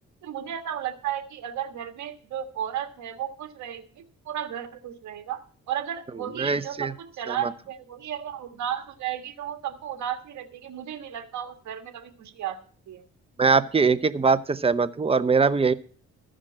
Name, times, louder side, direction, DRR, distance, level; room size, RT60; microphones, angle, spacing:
voice 1, 0.2-5.4 5.7-12.6 12.9-13.0, right 10 dB, 70° right, 7 dB, 1.5 m, -34 dB
voice 2, 6.4-6.9 7.3-7.4 13.4-15.7, right 4 dB, 20° right, 13 dB, 0.7 m, -22 dB
14.0 x 5.1 x 7.3 m, 0.43 s
cardioid pair, 90°, 30 cm